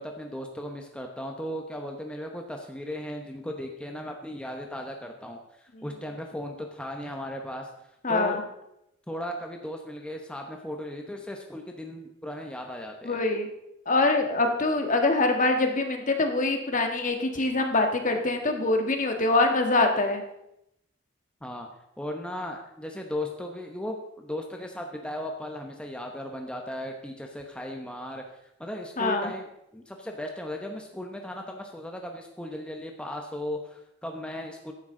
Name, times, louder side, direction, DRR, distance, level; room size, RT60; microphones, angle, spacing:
voice 1, 0.0-7.7 8.1-8.4 9.1-13.2 21.4-21.7 22.0-28.2 28.6-34.7, left 1 dB, 5° left, 2 dB, 0.9 m, -36 dB
voice 2, 8.0-8.4 13.0-13.5 13.9-20.2 29.0-29.3, left 2 dB, 40° left, 5 dB, 1.5 m, -24 dB
15.0 x 10.5 x 3.8 m, 0.82 s
head